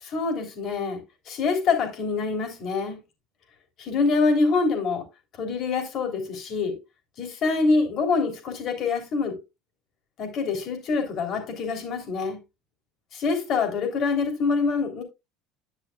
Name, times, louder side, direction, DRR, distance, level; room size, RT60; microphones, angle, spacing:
voice 1, 0.1-1.0 1.3-3.0 3.8-5.0 5.4-6.8 7.2-9.4 10.2-12.4 13.1-15.0, left 4 dB, 35° left, 3.2 m, -25 dB
10.5 x 10.0 x 2.3 m
cardioid pair, 170°, 0 cm